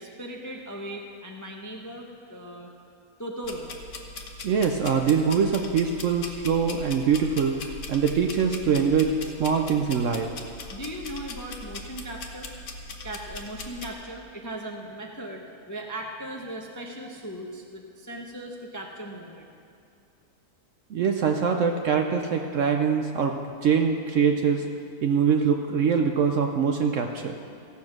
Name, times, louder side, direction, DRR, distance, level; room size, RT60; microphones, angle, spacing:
voice 1, 0.0-2.7 3.2-3.7 10.7-12.5 13.0-19.5, right 1 dB, 20° left, 0 dB, 0.6 m, -38 dB
sound 1, 3.4-13.9, left 3 dB, 55° left, 1.2 m, -40 dB
voice 2, 4.4-10.3 20.9-23.3 23.6-24.6 25.0-27.3, right 6 dB, 65° right, 4 dB, 0.9 m, -23 dB
15.5 x 7.2 x 6.0 m, 2.5 s
omnidirectional pair, 1.6 m